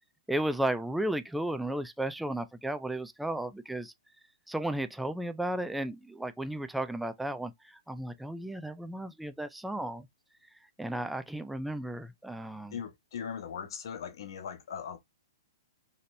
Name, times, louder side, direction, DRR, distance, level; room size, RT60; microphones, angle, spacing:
voice 1, 0.3-3.9 4.5-10.1 10.8-12.8, right 1 dB, ahead, 0.3 m, -34 dB
voice 2, 12.7-15.0, left 7 dB, 65° left, 1.3 m, -39 dB
4.1 x 3.2 x 2.6 m
hypercardioid pair, 140°, 3 cm